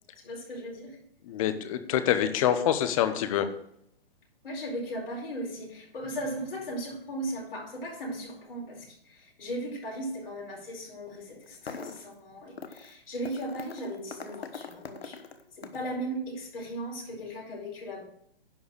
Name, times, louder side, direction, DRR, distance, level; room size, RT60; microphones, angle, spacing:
voice 1, 0.2-1.0 4.4-15.2 15.6-18.0, right 1 dB, 70° left, -1 dB, 4.9 m, -37 dB
voice 2, 1.3-3.5, left 10 dB, 35° left, 11 dB, 0.9 m, -26 dB
sound 1, 11.4-12.1 12.6-12.9 13.3-15.9, left 5 dB, 85° left, 1.2 m, -42 dB
11.0 x 4.8 x 6.6 m, 0.70 s
hypercardioid pair, 140°, 30 cm